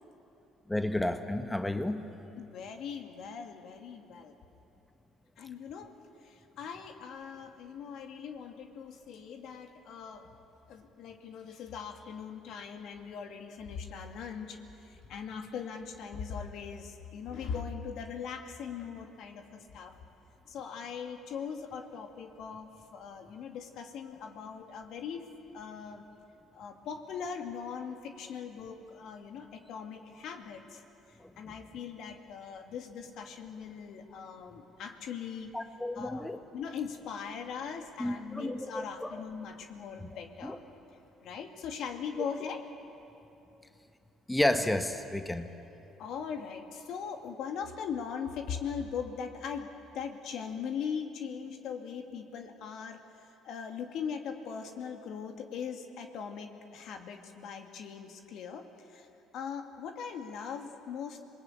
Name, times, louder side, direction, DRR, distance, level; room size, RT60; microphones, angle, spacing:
voice 1, 0.7-2.2 31.2-31.5 35.5-36.4 38.0-39.2 40.0-40.1 40.4-40.6 44.3-45.5, left 1 dB, 10° left, 7 dB, 1.4 m, -32 dB
voice 2, 2.4-4.3 5.4-5.9 6.2-10.3 10.7-14.6 14.8-19.9 20.5-25.3 25.5-26.1 26.5-30.8 31.4-35.5 36.0-36.3 36.5-40.6 41.2-42.6 46.0-49.7 49.9-59.1 59.3-61.2, left 6 dB, 65° left, 5 dB, 2.2 m, -40 dB
26.5 x 19.5 x 8.6 m, 3.0 s
hypercardioid pair, 65°, 0 cm